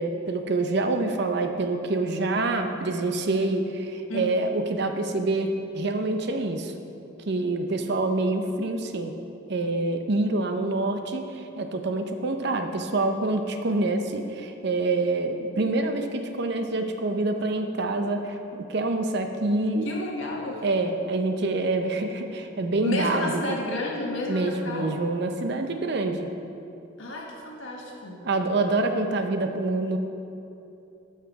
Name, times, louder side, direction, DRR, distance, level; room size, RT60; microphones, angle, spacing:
voice 1, 0.0-5.5 5.7-6.7 7.3-9.1 9.5-19.9 20.6-23.6 24.3-26.3 28.2-30.0, right 2 dB, 55° right, 6 dB, 0.7 m, -26 dB
voice 2, 4.1-4.5 19.8-20.6 22.8-24.9 27.0-28.2, left 1 dB, 75° left, -2 dB, 1.7 m, -32 dB
12.5 x 5.8 x 4.7 m, 2.8 s
head